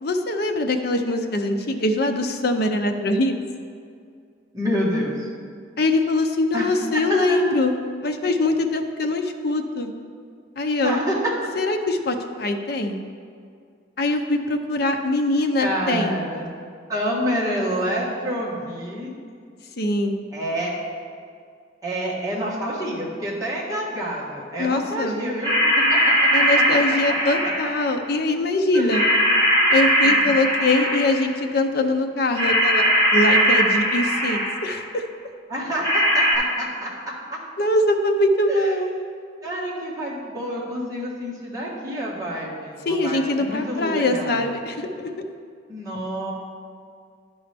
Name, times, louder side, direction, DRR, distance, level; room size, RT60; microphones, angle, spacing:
voice 1, 0.0-3.4 5.8-7.7 8.0-9.9 10.6-10.9 11.5-13.0 14.0-16.2 19.8-20.2 24.6-25.3 26.3-29.1 29.7-32.8 33.1-35.0 37.6-38.9 42.8-45.1, left 2 dB, 55° left, 5 dB, 0.6 m, -22 dB
voice 2, 4.5-5.3 6.5-6.7 7.3-7.4 10.8-11.3 15.6-16.5 16.9-19.1 20.3-20.7 21.8-26.3 28.7-29.0 30.0-30.3 35.5-37.4 38.5-38.7 39.4-44.5 45.7-46.3, equal, 20° right, -5 dB, 1.4 m, -28 dB
sound 1, 25.4-27.8 28.9-31.3 32.3-34.8 35.8-36.3, equal, 20° left, 1.8 m, -19 dB
11.0 x 5.4 x 3.4 m, 2.2 s
head